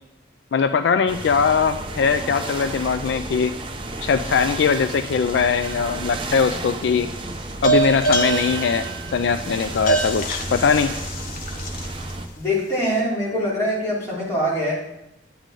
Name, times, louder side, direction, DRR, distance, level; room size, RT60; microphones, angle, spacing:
voice 1, 0.5-3.5 4.0-7.1 7.6-8.9 9.1-10.9, left 6 dB, 65° left, 11 dB, 0.3 m, -21 dB
sound 1, 1.1-12.3, right 2 dB, 25° right, 0.7 m, -32 dB
sound 2, 5.6-6.2 7.6-12.1, right 3 dB, 50° left, 1.0 m, -25 dB
voice 2, 12.4-14.7, equal, 15° left, -8 dB, 4.1 m, -23 dB
10.0 x 8.9 x 3.8 m, 0.89 s
head